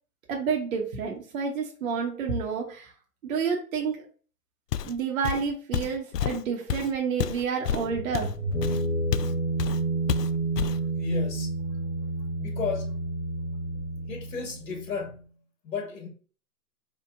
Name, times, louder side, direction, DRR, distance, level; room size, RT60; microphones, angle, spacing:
voice 1, 0.3-2.9 3.2-4.0 4.8-8.3, right 6 dB, 55° right, 1.1 m, -29 dB
Walk footsteps, 4.7-5.0 5.2-9.3 9.6-9.8 10.1-10.8, left 9 dB, 80° left, 0.5 m, -30 dB
sound 1, 7.7-15.1, right 2 dB, 5° left, 1.1 m, -30 dB
voice 2, 11.0-11.9 12.4-13.1 14.1-16.1, left 5 dB, 55° left, 2.0 m, -34 dB
4.6 x 2.5 x 3.6 m
hypercardioid pair, 140°, 48 cm